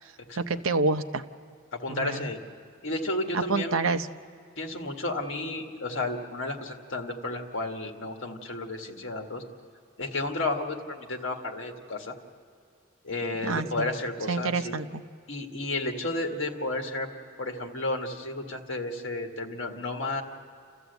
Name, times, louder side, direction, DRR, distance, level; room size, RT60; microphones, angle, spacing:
voice 1, 0.4-1.2 1.9-2.3 3.3-4.1 13.4-13.9 14.3-15.0, right 3 dB, 75° right, 10 dB, 0.7 m, -28 dB
voice 2, 1.7-2.4 2.8-3.8 4.6-9.4 10.0-12.1 13.0-14.8 15.3-17.1 17.4-20.2, left 2 dB, 60° left, 3 dB, 1.8 m, -32 dB
29.5 x 14.0 x 8.1 m, 2.2 s
head